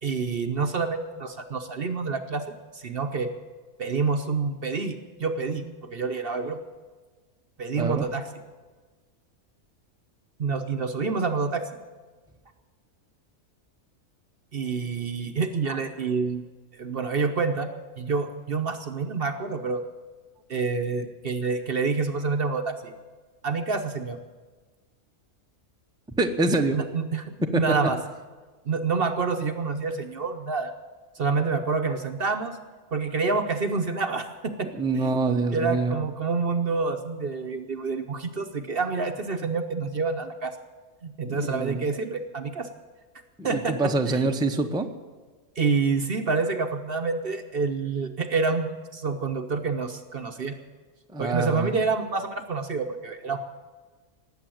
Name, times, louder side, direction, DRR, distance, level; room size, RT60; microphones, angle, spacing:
voice 1, 0.0-2.4 2.7-3.3 3.8-6.6 7.6-8.3 10.4-11.6 14.5-16.4 16.7-19.8 20.5-22.9 23.4-24.2 26.7-28.0 28.6-30.7 31.2-32.6 32.9-40.5 41.0-42.7 43.4-43.8 44.1-44.3 45.6-50.6 51.2-53.4, right 4 dB, 45° right, 6 dB, 1.0 m, -28 dB
voice 2, 26.2-26.8 27.4-27.9 34.8-36.0 41.2-41.9 43.4-44.9 51.1-51.7, right 2 dB, 5° right, 4 dB, 0.7 m, -25 dB
19.0 x 7.9 x 7.7 m, 1.4 s
omnidirectional pair, 1.5 m